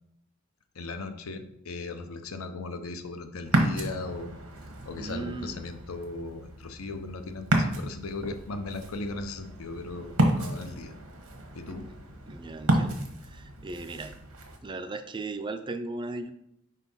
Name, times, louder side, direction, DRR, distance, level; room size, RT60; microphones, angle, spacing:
voice 1, 0.8-4.3 4.9-10.9 11.5-11.9, left 3 dB, 75° left, 7 dB, 0.7 m, -37 dB
Ocean, 3.4-14.6, right 1 dB, 85° right, 1.1 m, -31 dB
voice 2, 5.0-5.6 11.8-12.0 12.3-14.2 14.6-16.3, right 2 dB, 20° right, 9 dB, 0.4 m, -37 dB
4.8 x 4.1 x 5.4 m, 0.78 s
head